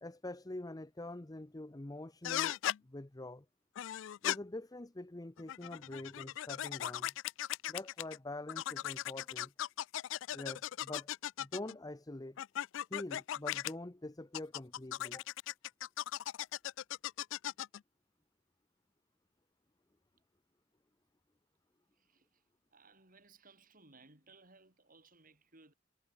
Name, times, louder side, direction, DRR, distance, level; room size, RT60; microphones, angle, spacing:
voice 1, 0.0-2.6 2.8-3.5 4.2-7.1 7.7-9.5 10.3-11.1 11.4-12.4 12.9-15.2, left 2 dB, 20° left, 0.8 m, -45 dB
sound 1, 2.2-2.8 3.7-4.4 5.4-8.2 8.5-11.7 12.4-13.7 14.3-17.8, left 12 dB, 80° left, 0.3 m, -38 dB
voice 2, 21.9-22.4 22.7-25.7, right 3 dB, 45° right, 6.6 m, -62 dB
head